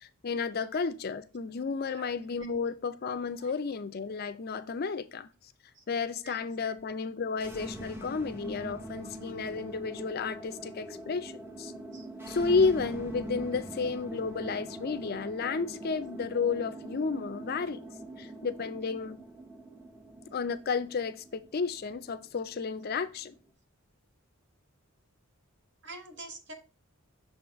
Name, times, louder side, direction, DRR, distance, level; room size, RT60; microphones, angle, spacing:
voice 1, 0.0-5.3 5.9-11.3 11.6-11.7 12.3-17.8 18.2-19.2 20.3-23.3, left 5 dB, 45° left, 0.4 m, -32 dB
voice 2, 6.2-6.7 11.9-12.1 25.8-26.5, right 2 dB, 50° right, 1.2 m, -46 dB
sound 1, 7.3-23.4, right 1 dB, 10° right, 0.7 m, -43 dB
6.3 x 3.9 x 4.5 m
head